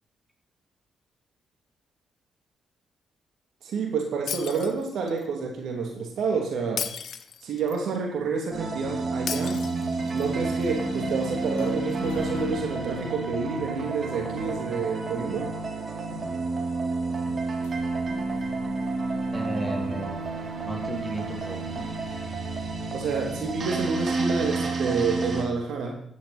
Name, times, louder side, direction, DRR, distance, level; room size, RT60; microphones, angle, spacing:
voice 1, 3.6-6.8 7.4-9.7 10.1-15.5 22.9-26.0, right 4 dB, 70° right, 2 dB, 2.8 m, -29 dB
Shatter, 4.3-5.2 6.8-7.8 9.3-10.3, left 8 dB, 65° left, 0.9 m, -34 dB
sound 1, 8.5-25.4, right 3 dB, 50° right, 3.4 m, -30 dB
sound 2, 9.4-24.5, left 5 dB, 90° left, 1.9 m, -47 dB
voice 2, 19.3-21.6, right 1 dB, 10° right, 2 dB, 3.6 m, -34 dB
13.5 x 11.0 x 4.3 m, 0.68 s
hypercardioid pair, 45°, 0 cm